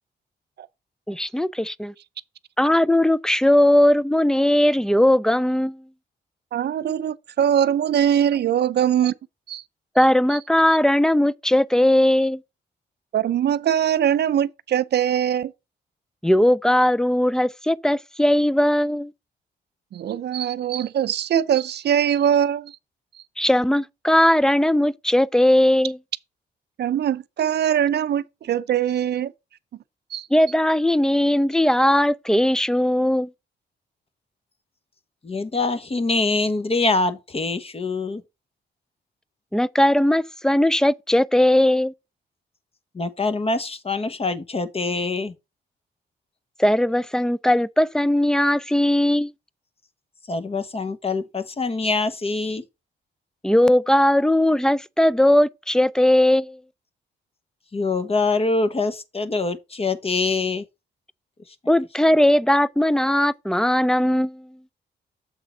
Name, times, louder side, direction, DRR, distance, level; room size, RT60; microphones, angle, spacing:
voice 1, 1.1-1.9 2.6-5.8 10.0-12.4 16.2-19.1 23.4-26.0 30.3-33.3 39.5-41.9 46.6-49.3 53.4-56.6 61.7-64.5, left 1 dB, 5° left, 0.3 m, -19 dB
voice 2, 6.5-9.1 9.5-9.6 13.1-15.5 19.9-22.8 26.8-29.3 30.1-30.3, right 9 dB, 65° right, 0.5 m, -22 dB
voice 3, 35.2-38.2 42.9-45.3 50.3-52.6 57.7-60.6, left 3 dB, 30° left, 1.0 m, -24 dB
7.3 x 3.7 x 5.3 m
cardioid pair, 75°, 19 cm